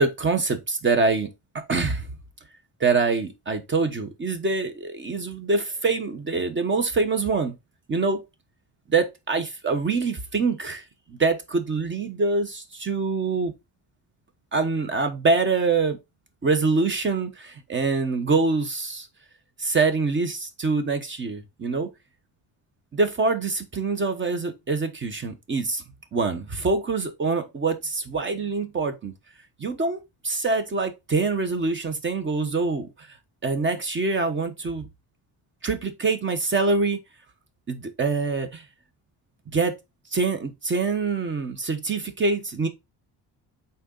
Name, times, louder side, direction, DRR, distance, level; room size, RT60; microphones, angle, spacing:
voice 1, 0.0-2.1 2.8-7.6 7.9-8.2 8.9-13.5 14.5-16.0 16.4-19.1 19.6-21.9 22.9-25.8 26.1-29.1 29.6-32.9 33.4-34.9 35.6-37.0 37.7-38.6 39.5-39.8 40.1-42.7, right 4 dB, 30° right, 1.1 m, -25 dB
6.5 x 4.1 x 3.9 m
wide cardioid pair, 170°, 41 cm